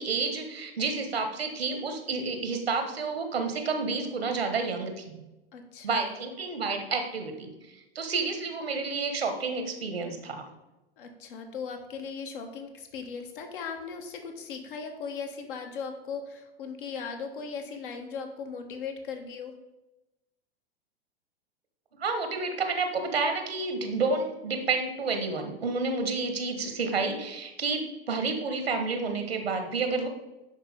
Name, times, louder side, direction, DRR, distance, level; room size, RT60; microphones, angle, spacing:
voice 1, 0.0-5.2 5.8-7.5 7.9-10.4 21.9-30.1, right 4 dB, 75° right, 6 dB, 1.3 m, -30 dB
voice 2, 5.5-6.1 11.0-19.5, left 5 dB, 55° left, 4 dB, 1.3 m, -38 dB
10.5 x 4.5 x 3.5 m, 0.99 s
figure-of-eight pair, 90°, 31 cm